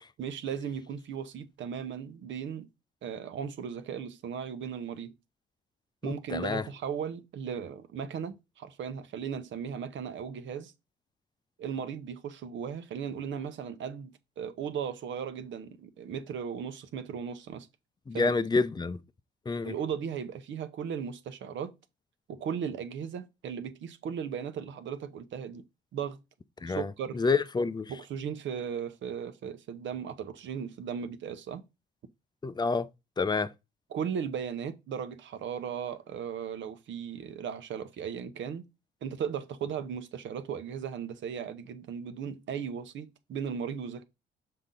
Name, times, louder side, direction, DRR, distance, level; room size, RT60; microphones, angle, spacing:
voice 1, 0.2-2.7 3.0-5.1 6.0-10.7 11.6-17.7 18.1-18.3 19.6-21.7 22.3-25.6 25.9-26.2 26.7-27.2 27.9-31.6 33.9-38.6 39.0-44.0, right 7 dB, 70° right, 1.0 m, -36 dB
voice 2, 6.0-6.6 18.1-19.0 19.5-19.7 26.6-27.9 32.4-32.9 33.2-33.5, left 4 dB, 20° left, 0.6 m, -28 dB
6.8 x 4.2 x 3.8 m
cardioid pair, 90°, 20 cm